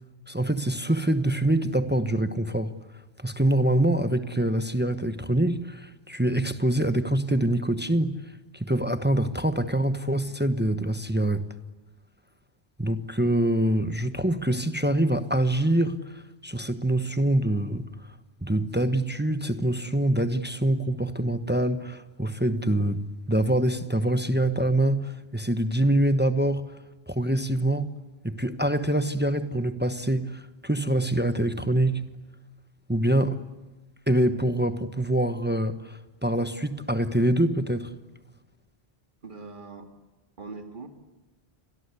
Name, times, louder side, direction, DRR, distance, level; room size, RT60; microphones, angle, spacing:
voice 1, 0.3-2.7 3.2-8.2 8.5-11.5 12.8-17.9 18.4-26.6 27.1-32.0 32.9-33.5 34.1-37.9, right 1 dB, 10° right, 1.0 m, -25 dB
voice 2, 39.2-39.9 40.4-40.9, right 3 dB, 50° right, 2.4 m, -41 dB
30.0 x 23.5 x 8.3 m
omnidirectional pair, 1.1 m